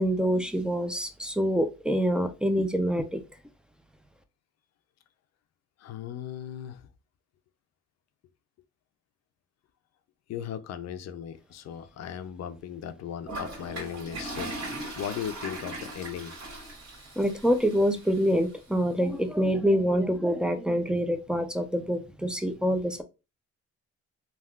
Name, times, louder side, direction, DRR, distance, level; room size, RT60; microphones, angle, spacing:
voice 1, 0.0-3.2 17.2-23.0, equal, 5° right, 0.4 m, -26 dB
voice 2, 5.8-6.9 10.3-14.5 15.0-16.4, left 9 dB, 60° left, 0.5 m, -37 dB
Toilet flush, 13.3-18.3, right 2 dB, 55° right, 1.8 m, -39 dB
3.4 x 2.3 x 2.3 m
cardioid pair, 90°, 30 cm